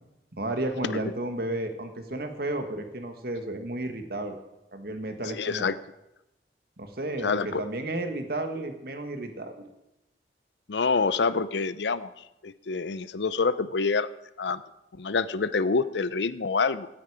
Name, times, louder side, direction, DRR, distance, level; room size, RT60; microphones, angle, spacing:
voice 1, 0.4-4.4 4.7-5.8 6.8-9.7, right 1 dB, 60° right, 6 dB, 1.7 m, -32 dB
voice 2, 5.3-5.8 7.2-7.6 10.7-12.1 12.4-14.1 14.4-14.6 14.9-16.9, left 4 dB, 80° left, 15 dB, 0.6 m, -26 dB
17.0 x 9.5 x 5.0 m, 0.94 s
head